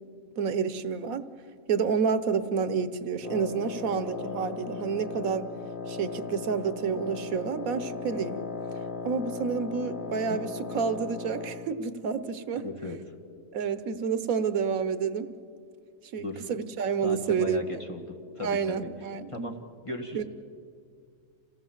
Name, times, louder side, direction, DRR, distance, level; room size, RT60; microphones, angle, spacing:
voice 1, 0.4-1.2 1.7-5.5 5.9-8.4 9.0-12.6 13.5-15.3 16.1-17.8 18.4-19.6 20.1-20.2, right 6 dB, 90° right, 12 dB, 1.4 m, -29 dB
Wind instrument woodwind instrument, 3.2-11.8, left 4 dB, 40° left, 1.2 m, -37 dB
voice 2, 12.6-13.0 16.2-16.6 17.0-18.1 18.3-18.9 19.3-19.5 19.8-20.2, left 2 dB, 25° left, 2 dB, 1.9 m, -36 dB
27.5 x 17.0 x 7.3 m, 2.3 s
omnidirectional pair, 1.4 m